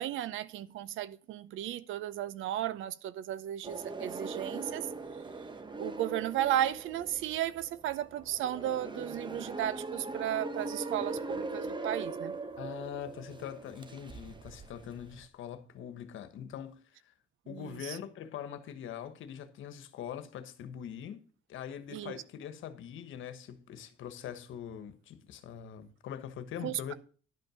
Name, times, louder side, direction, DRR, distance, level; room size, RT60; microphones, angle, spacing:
voice 1, 0.0-4.9 5.8-12.3 17.5-18.0 21.9-22.1 26.6-26.9, right 12 dB, 85° right, 0.7 m, -34 dB
sound 1, 3.6-15.3, right 3 dB, 25° right, 1.1 m, -41 dB
voice 2, 12.6-17.1 17.5-21.2 21.5-26.9, left 9 dB, 80° left, 1.3 m, -43 dB
11.5 x 5.4 x 6.2 m
cardioid pair, 90°, 20 cm